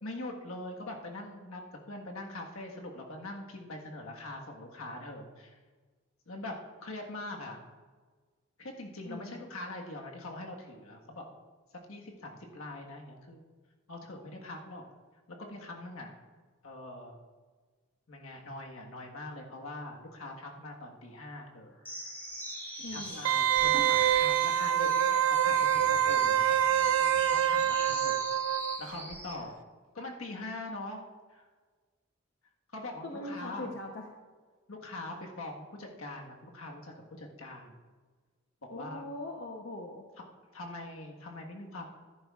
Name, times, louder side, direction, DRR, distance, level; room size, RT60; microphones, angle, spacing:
voice 1, 0.0-1.6 1.9-5.6 6.3-6.6 6.8-7.6 8.6-11.2 11.9-13.4 13.9-14.8 15.3-16.1 16.6-17.2 18.1-21.8 22.9-26.9 27.2-28.1 28.8-29.5 29.9-31.0 31.3-31.4 32.7-33.7 34.7-37.7 38.7-39.1 40.2-40.3 40.5-41.9, left 2 dB, 85° left, 0 dB, 1.5 m, -43 dB
voice 2, 9.1-9.4 22.8-23.2 23.7-23.8 33.0-34.1 38.7-40.0, left 1 dB, 60° left, 1 dB, 0.9 m, -41 dB
sound 1, 21.8-29.4, equal, 10° left, 3.2 m, -42 dB
Wind instrument woodwind instrument, 23.2-28.8 29.1-29.2, right 10 dB, 90° right, 0.4 m, -26 dB
13.5 x 10.5 x 2.4 m, 1.4 s
head